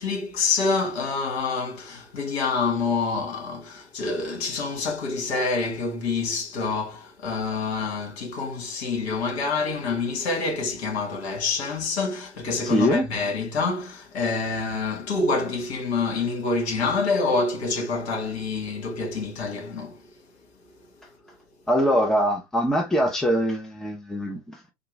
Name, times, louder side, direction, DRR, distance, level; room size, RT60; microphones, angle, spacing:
voice 1, 0.0-20.0, left 4 dB, 65° left, 1.9 m, -27 dB
voice 2, 12.6-13.1 21.7-24.6, equal, ahead, 0.7 m, -23 dB
3.6 x 2.9 x 3.4 m
figure-of-eight pair, 85°, 35 cm